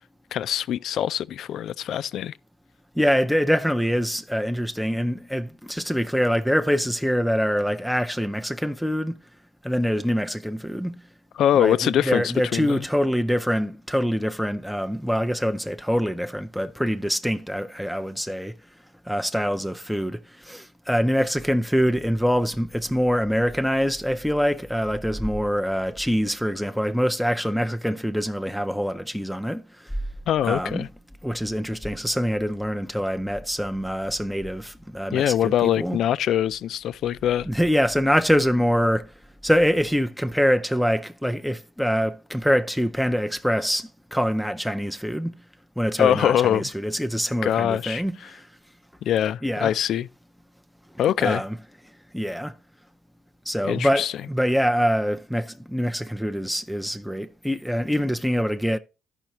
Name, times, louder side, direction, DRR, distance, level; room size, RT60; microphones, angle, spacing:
voice 1, 0.3-2.3 11.4-12.8 30.3-30.9 35.1-37.5 46.0-46.7 47.4-48.0 49.0-50.1 51.0-51.4 53.6-54.1, left 10 dB, 75° left, 0.3 m, -23 dB
voice 2, 3.0-9.2 9.6-11.0 11.5-18.6 19.0-30.0 30.4-30.9 31.2-36.0 37.5-39.1 39.4-45.3 45.8-48.5 49.4-49.7 51.2-51.6 52.1-52.5 53.5-58.8, equal, ahead, 0.5 m, -24 dB
13.5 x 5.6 x 2.9 m
cardioid pair, 90°, 0 cm